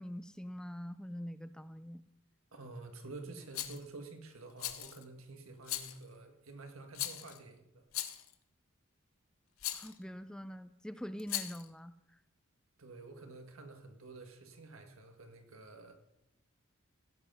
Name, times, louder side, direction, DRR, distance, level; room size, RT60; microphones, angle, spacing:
voice 1, 0.0-2.0 9.7-11.9, equal, 5° left, 12 dB, 0.4 m, -44 dB
voice 2, 2.5-7.8 12.8-15.9, right 3 dB, 80° right, 5 dB, 1.6 m, -50 dB
Rattle, 3.5-3.8 4.6-5.0 5.6-6.0 6.9-7.4 7.9-8.3 9.6-9.9 11.2-11.7, left 12 dB, 80° left, 1.0 m, -39 dB
15.5 x 7.8 x 5.6 m, 0.87 s
head